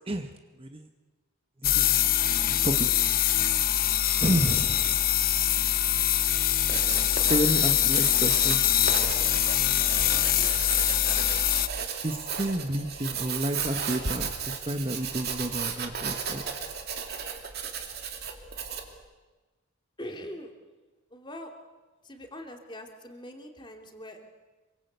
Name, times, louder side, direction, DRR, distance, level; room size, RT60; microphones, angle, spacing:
sound 1, 1.6-11.7, left 11 dB, 40° left, 1.0 m, -24 dB
voice 1, 1.6-2.0 2.6-2.9 4.2-5.0 7.3-8.6 12.0-16.5, right 1 dB, 25° right, 6 dB, 1.2 m, -30 dB
Writing, 6.5-19.0, right 6 dB, 45° right, 2.7 m, -34 dB
voice 2, 10.1-10.5 20.0-20.5 21.1-21.5 22.0-24.3, left 1 dB, 20° left, 3 dB, 2.8 m, -42 dB
27.0 x 24.0 x 8.1 m, 1.2 s
head